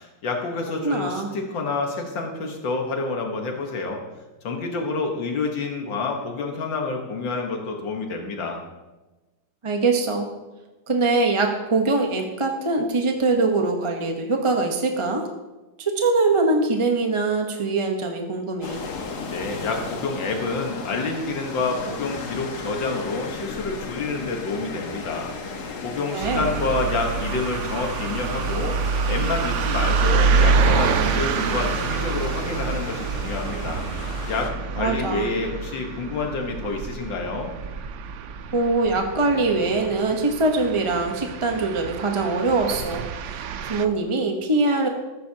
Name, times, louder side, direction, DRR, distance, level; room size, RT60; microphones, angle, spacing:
voice 1, 0.0-4.0 4.4-8.6 19.3-37.5, left 3 dB, 85° left, 2 dB, 2.0 m, -28 dB
voice 2, 0.8-1.3 9.6-10.3 10.9-15.3 15.8-18.8 26.1-26.4 34.8-35.3 38.5-44.9, right 3 dB, 25° right, 3 dB, 0.7 m, -23 dB
sound 1, 18.6-34.5, left 4 dB, 65° left, 1.7 m, -35 dB
sound 2, 26.2-43.9, right 5 dB, 75° right, 0.6 m, -26 dB
14.5 x 14.0 x 2.8 m, 1.1 s
omnidirectional pair, 2.0 m